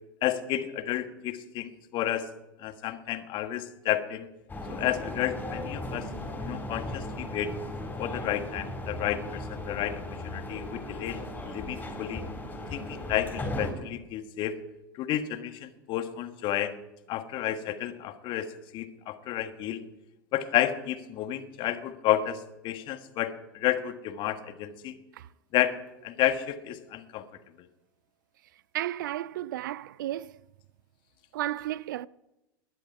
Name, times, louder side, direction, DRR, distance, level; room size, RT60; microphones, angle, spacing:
voice 1, 0.2-2.3 2.6-4.3 4.7-6.1 6.4-7.5 8.0-12.2 12.7-14.5 14.9-16.7 17.1-19.8 20.3-24.9 25.5-27.2, left 12 dB, 45° left, 1.5 m, -31 dB
sound 1, 4.5-13.7, left 1 dB, 15° left, 4.7 m, -37 dB
voice 2, 28.7-30.4 31.3-32.1, right 13 dB, 70° right, 0.4 m, -33 dB
20.0 x 10.5 x 4.7 m
hypercardioid pair, 85°, 11 cm